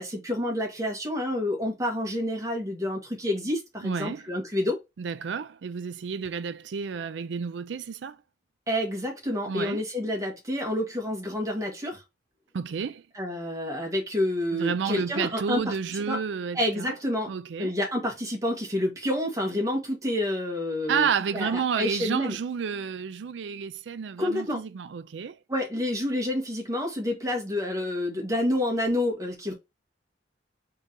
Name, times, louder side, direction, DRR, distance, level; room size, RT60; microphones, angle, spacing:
voice 1, 0.0-4.8 8.7-12.0 13.1-15.7 16.1-16.2 16.5-17.3 17.6-22.4 24.2-24.6 25.5-29.5, left 1 dB, 20° right, 1.5 m, -28 dB
voice 2, 3.8-4.3 5.0-8.2 9.5-9.8 12.5-13.0 14.5-17.0 17.3-17.7 20.9-25.4, right 6 dB, 80° right, 0.4 m, -31 dB
3.8 x 3.8 x 2.8 m
head